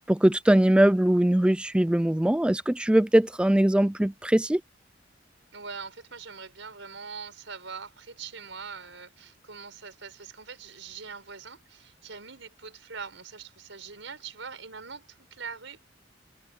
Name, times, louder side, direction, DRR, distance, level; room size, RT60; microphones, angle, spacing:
voice 1, 0.1-4.6, right 1 dB, 5° right, 0.3 m, -21 dB
voice 2, 5.5-15.9, right 5 dB, 80° right, 5.0 m, -42 dB
head